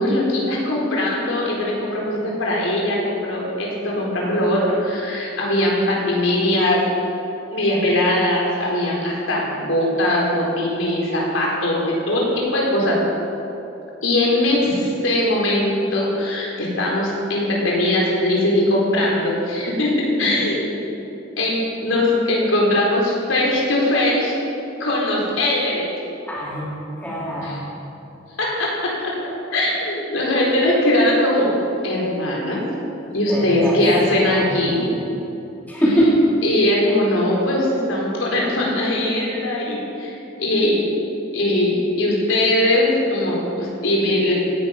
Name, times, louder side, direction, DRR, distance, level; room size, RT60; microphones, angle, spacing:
voice 1, 0.0-6.8 7.5-13.0 14.0-20.7 21.4-24.3 24.8-25.9 27.4-27.6 28.4-29.1 29.5-31.5 31.8-32.6 33.1-34.9 36.4-40.8 41.3-44.3, left 1 dB, 80° left, -4 dB, 4.1 m, -20 dB
voice 2, 26.3-26.6 27.0-27.6 33.3-33.7 34.3-34.4 34.8-34.9 35.7-36.2, right 1 dB, 10° left, -7 dB, 3.0 m, -21 dB
17.0 x 10.5 x 5.8 m, 2.9 s
head